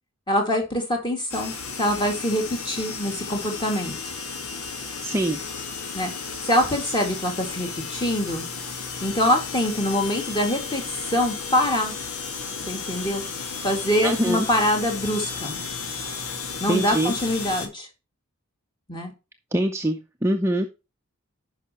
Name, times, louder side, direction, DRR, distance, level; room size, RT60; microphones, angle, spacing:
voice 1, 0.3-1.5 1.8-3.9 5.9-6.1 6.5-8.4 9.0-10.8 11.1-11.9 12.7-13.2 13.6-15.6 16.6-17.9 18.9-19.1, left 1 dB, 20° left, 2 dB, 2.3 m, -24 dB
sound 1, 1.3-17.7, left 5 dB, 90° left, 1.8 m, -33 dB
voice 2, 5.0-5.4 14.0-14.5 16.7-17.1 19.5-20.7, right 1 dB, 10° right, 4 dB, 0.6 m, -24 dB
10.5 x 5.6 x 3.0 m, 0.28 s
head